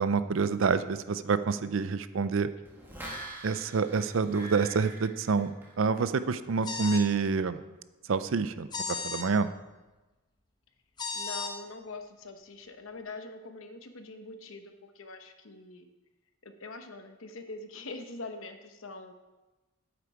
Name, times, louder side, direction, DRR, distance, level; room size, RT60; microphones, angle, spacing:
voice 1, 0.0-2.5 3.4-7.6 8.1-9.5, right 5 dB, 60° right, 13 dB, 0.5 m, -28 dB
sound 1, 2.6-6.2 6.5-6.6, right 2 dB, 10° right, 1.5 m, -44 dB
sound 2, 6.6-7.1 8.7-9.3 11.0-11.5, left 4 dB, 20° left, 0.8 m, -34 dB
voice 2, 11.1-15.9 16.4-19.1, left 3 dB, 65° left, 7 dB, 0.9 m, -43 dB
8.5 x 8.2 x 4.8 m, 1.1 s
head